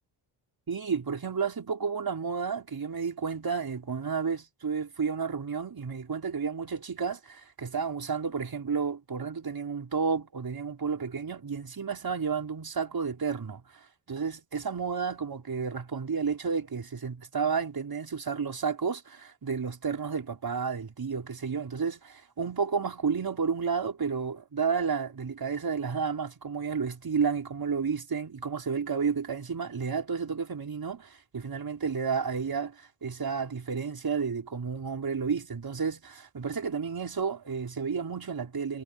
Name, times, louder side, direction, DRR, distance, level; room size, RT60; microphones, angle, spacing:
voice 1, 0.7-38.8, right 5 dB, 50° right, 5.6 m, -31 dB
supercardioid pair, 50°, 45 cm